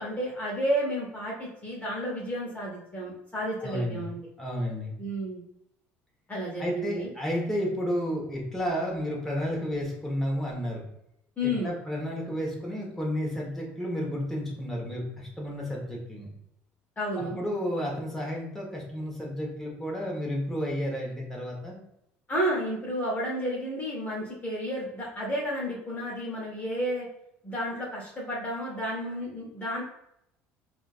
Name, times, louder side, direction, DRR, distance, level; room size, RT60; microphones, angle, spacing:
voice 1, 0.0-4.2 5.0-5.4 6.3-7.1 11.4-11.7 17.0-17.4 22.3-27.1 27.4-29.8, equal, 25° left, -4 dB, 1.0 m, -31 dB
voice 2, 3.6-4.0 4.4-4.9 6.6-10.8 11.4-16.3 17.2-21.8, equal, 5° left, -3 dB, 1.2 m, -31 dB
3.7 x 2.4 x 2.5 m, 0.79 s
hypercardioid pair, 70°, 6 cm